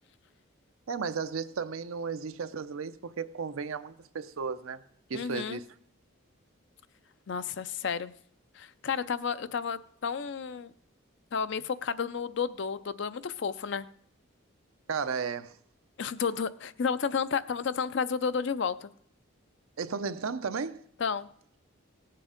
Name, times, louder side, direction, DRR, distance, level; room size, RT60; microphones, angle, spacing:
voice 1, 0.9-4.8 5.1-5.7 14.9-15.5 19.8-20.8, right 5 dB, 85° right, 0.6 m, -34 dB
voice 2, 5.1-5.6 7.3-8.1 8.6-10.7 11.3-13.9 16.0-18.9 21.0-21.3, left 6 dB, 60° left, 0.5 m, -31 dB
18.0 x 7.6 x 5.0 m
head